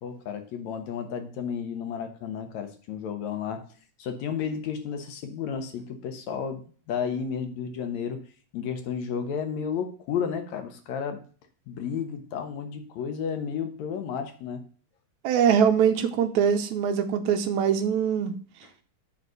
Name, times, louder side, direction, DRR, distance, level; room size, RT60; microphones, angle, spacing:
voice 1, 0.0-3.7 4.0-8.2 8.5-11.2 11.7-14.6, left 7 dB, 70° left, 2.3 m, -32 dB
voice 2, 15.2-18.3, right 7 dB, 75° right, 2.0 m, -23 dB
7.9 x 4.1 x 6.6 m
omnidirectional pair, 3.5 m